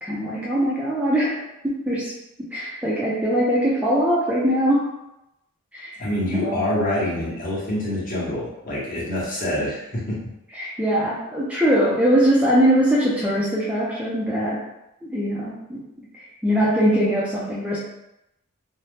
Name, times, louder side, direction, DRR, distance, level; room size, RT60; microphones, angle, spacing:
voice 1, 0.0-2.1 2.5-4.9 5.7-6.6 10.5-14.6 15.0-15.8 16.1-17.8, equal, 5° right, -6 dB, 0.4 m, -22 dB
voice 2, 6.0-10.2, left 1 dB, 40° left, -7 dB, 1.0 m, -26 dB
2.6 x 2.0 x 3.2 m, 0.87 s
head